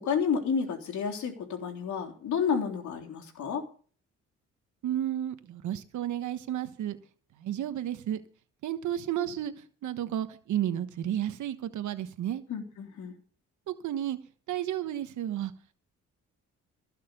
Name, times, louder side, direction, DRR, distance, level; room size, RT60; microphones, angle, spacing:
voice 1, 0.0-3.7 12.5-13.2, left 6 dB, 70° left, 3.5 m, -30 dB
voice 2, 4.8-7.0 7.4-8.2 8.6-9.5 9.8-12.4 13.7-14.2 14.5-15.5, right 11 dB, 75° right, 1.3 m, -32 dB
16.5 x 6.7 x 6.9 m
cardioid pair, 90°, 30 cm